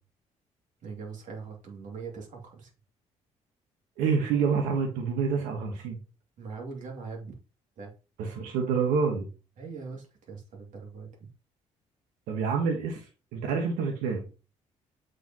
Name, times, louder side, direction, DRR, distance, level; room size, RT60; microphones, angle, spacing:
voice 1, 0.8-2.7 6.4-7.4 7.8-7.9 9.6-11.3, right 5 dB, 70° right, 1 dB, 2.7 m, -41 dB
voice 2, 4.0-6.0 8.2-9.3 12.3-13.0 13.3-14.2, right 5 dB, 90° right, 2 dB, 1.4 m, -27 dB
7.8 x 5.1 x 3.0 m, 0.32 s
supercardioid pair, 65°, 14 cm